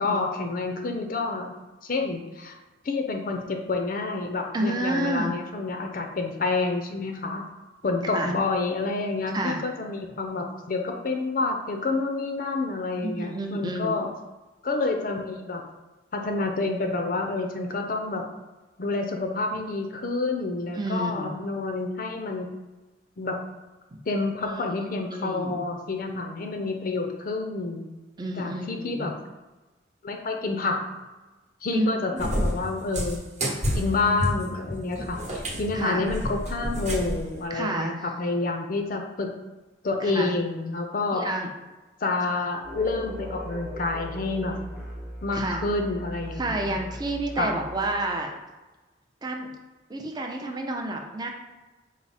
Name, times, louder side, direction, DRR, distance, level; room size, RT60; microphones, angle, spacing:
voice 1, 0.0-1.5 1.8-2.6 2.8-7.5 7.8-14.1 14.6-15.6 16.1-18.2 18.8-22.5 23.2-23.4 24.1-27.9 28.3-29.1 30.0-30.8 31.6-33.2 33.7-39.3 39.8-41.3 42.0-44.6 45.2-46.8 47.4-47.6, left 3 dB, 50° left, 3 dB, 0.5 m, -28 dB
voice 2, 4.5-5.3 8.1-8.3 9.3-9.6 13.0-14.0 20.7-21.4 23.9-24.0 24.4-24.7 25.1-25.7 28.2-29.1 31.7-32.3 35.7-36.1 37.5-38.1 40.0-40.3 41.1-41.5 45.3-45.6 46.4-48.3 49.2-49.5 49.9-51.3, right 1 dB, 20° right, 2 dB, 0.5 m, -30 dB
Cat, 32.2-37.3, equal, 40° right, 0.9 m, -29 dB
sound 1, 42.6-48.1, equal, 5° right, 0.9 m, -38 dB
4.6 x 2.1 x 4.1 m, 1.2 s
head